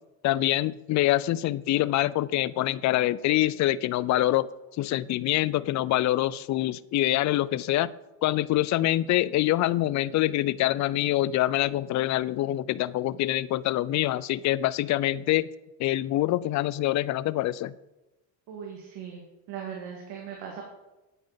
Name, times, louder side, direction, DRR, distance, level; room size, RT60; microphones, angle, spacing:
voice 1, 0.2-4.5 4.8-7.9 8.2-15.5 15.8-17.7, left 15 dB, 45° left, 19 dB, 0.4 m, -25 dB
voice 2, 18.5-20.6, right 7 dB, 70° right, 0 dB, 1.8 m, -39 dB
9.2 x 8.7 x 3.9 m, 1.0 s
supercardioid pair, 105°, 43 cm